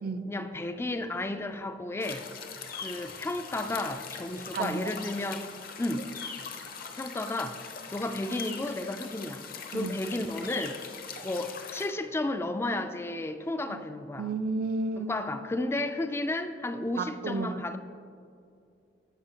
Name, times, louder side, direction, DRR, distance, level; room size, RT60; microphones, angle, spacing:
voice 1, 0.3-2.3 2.7-5.4 5.8-6.1 7.0-10.8 11.2-14.3 15.0-17.8, left 2 dB, 15° left, 8 dB, 0.3 m, -33 dB
sound 1, 2.0-11.9, left 5 dB, 55° left, 0.7 m, -41 dB
voice 2, 4.5-4.9 9.7-10.0 13.7-13.8 14.2-15.1 17.0-17.6, right 3 dB, 55° right, 9 dB, 0.4 m, -32 dB
15.5 x 5.6 x 2.9 m, 2.4 s
head